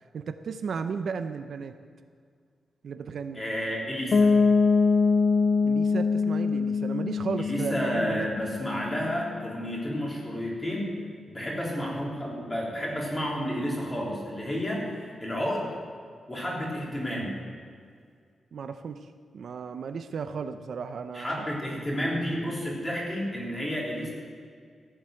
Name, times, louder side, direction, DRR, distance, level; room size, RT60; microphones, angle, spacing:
voice 1, 0.1-1.8 2.8-3.4 5.6-8.3 18.5-19.1 19.3-21.5, right 5 dB, 60° right, 9 dB, 0.6 m, -34 dB
voice 2, 3.3-4.3 7.4-11.0 11.3-15.7 16.3-17.3 21.1-24.1, equal, 15° left, -4 dB, 3.4 m, -31 dB
Piano, 4.1-9.8, left 4 dB, 50° left, 0.8 m, -24 dB
15.0 x 7.8 x 7.7 m, 2.1 s
wide cardioid pair, 150°, 0 cm